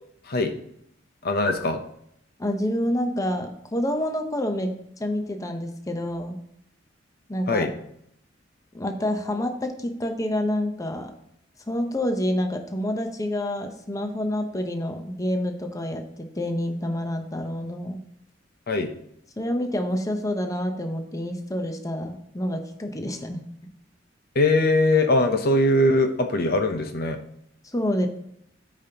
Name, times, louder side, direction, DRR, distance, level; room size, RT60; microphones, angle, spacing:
voice 1, 1.2-1.8 7.5-7.7 18.7-18.9 24.3-27.2, left 2 dB, 55° left, 6 dB, 0.7 m, -21 dB
voice 2, 2.4-4.7 5.0-6.4 7.3-7.7 8.7-11.1 11.7-18.0 19.4-23.4 27.7-28.1, left 1 dB, 20° left, 5 dB, 0.8 m, -28 dB
12.5 x 5.2 x 2.9 m, 0.72 s
head